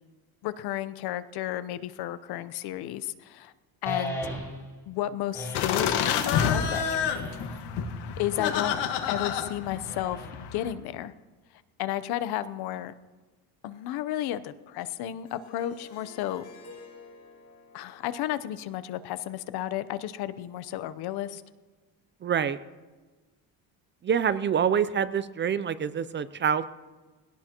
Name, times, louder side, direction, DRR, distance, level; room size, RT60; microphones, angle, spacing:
voice 1, 0.4-3.5 3.8-4.3 4.9-7.3 8.2-8.8 9.1-11.1 11.8-12.9 13.6-16.4 17.7-21.4, left 12 dB, 70° left, 13 dB, 0.9 m, -33 dB
sound 1, 3.9-4.8 5.3-6.0 6.8-7.6 8.3-9.0 9.8-10.6, left 1 dB, 5° left, 4.5 m, -37 dB
sound 2, 5.5-10.7, left 8 dB, 90° left, 1.6 m, -28 dB
Harp, 15.3-20.2, left 3 dB, 40° left, 5.2 m, -52 dB
voice 2, 22.2-22.6 24.0-26.7, right 7 dB, 30° right, 14 dB, 0.5 m, -26 dB
20.5 x 17.0 x 3.0 m, 1.3 s
cardioid pair, 130°, 40 cm